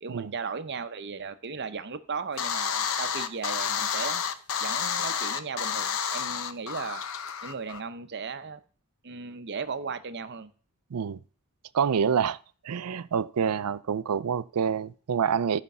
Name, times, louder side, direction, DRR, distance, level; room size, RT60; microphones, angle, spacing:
voice 1, 0.0-4.2 4.6-7.0 7.4-8.6 9.0-10.5, right 5 dB, 50° right, 0.7 m, -36 dB
sound 1, 2.4-7.8, left 7 dB, 65° left, 0.7 m, -30 dB
voice 2, 11.7-12.4 12.6-15.6, right 7 dB, 85° right, 0.4 m, -27 dB
12.0 x 5.1 x 5.5 m
head